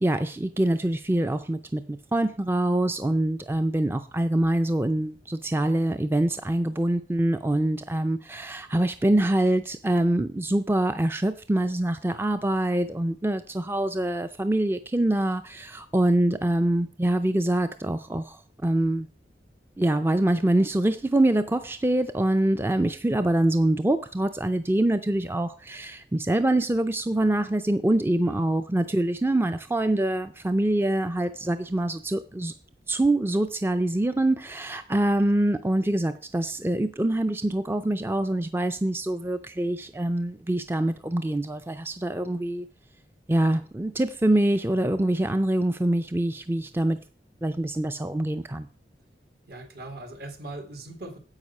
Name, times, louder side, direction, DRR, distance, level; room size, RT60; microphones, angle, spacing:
voice 1, 0.0-19.1 19.8-32.5 32.9-42.7 43.3-47.0 47.4-48.7, right 1 dB, 15° right, 0.4 m, -25 dB
voice 2, 28.2-28.6 49.5-51.2, right 2 dB, 65° right, 1.7 m, -40 dB
9.8 x 8.0 x 5.4 m
head